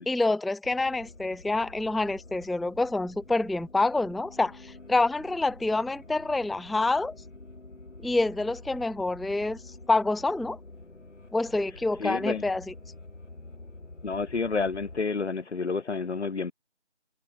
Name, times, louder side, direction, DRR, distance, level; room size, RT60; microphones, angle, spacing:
voice 1, 0.1-7.1 8.0-9.6 9.9-10.6 11.3-12.7, left 2 dB, ahead, 0.4 m, -27 dB
sound 1, 0.6-15.0, left 2 dB, 85° left, 2.2 m, -48 dB
voice 2, 12.0-12.4 14.0-16.5, left 4 dB, 65° left, 0.7 m, -29 dB
figure-of-eight pair, 175°, 36 cm